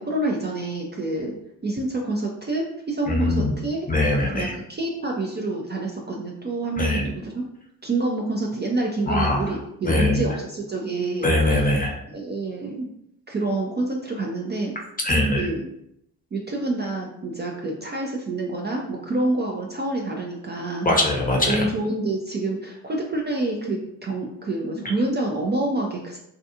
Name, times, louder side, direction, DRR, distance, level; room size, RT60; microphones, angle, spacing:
voice 1, 0.0-1.3 1.6-3.9 4.3-7.4 7.8-11.3 12.1-12.9 13.3-14.7 15.3-15.6 16.3-20.9 21.5-26.2, right 2 dB, 25° right, -1 dB, 0.5 m, -27 dB
voice 2, 3.1-3.5 3.9-4.5 6.8-7.1 9.1-9.6 9.8-10.2 11.2-11.9 15.0-15.5 20.8-21.7, left 1 dB, 20° left, 0 dB, 0.7 m, -22 dB
2.4 x 2.3 x 2.7 m, 0.77 s
hypercardioid pair, 50°, 43 cm